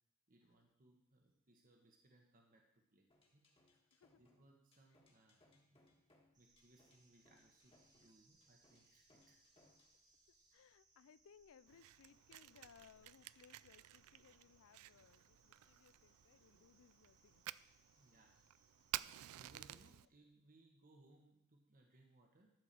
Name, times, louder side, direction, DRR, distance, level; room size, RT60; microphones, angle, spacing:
voice 1, 0.3-3.1 3.3-3.4 4.2-6.0 6.4-9.4 18.0-18.4 19.3-22.5, right 2 dB, 40° right, 2 dB, 1.3 m, -69 dB
sound 1, 3.1-10.0, left 2 dB, 25° left, 1.7 m, -73 dB
voice 2, 3.7-4.2 8.0-8.1 10.5-17.4 19.8-19.9, left 7 dB, 65° left, 18 dB, 0.4 m, -66 dB
sound 2, 6.3-19.9, right 3 dB, 20° right, 1.7 m, -75 dB
Fire, 11.7-20.1, right 15 dB, 80° right, 0.3 m, -52 dB
12.0 x 4.9 x 7.7 m, 0.79 s
head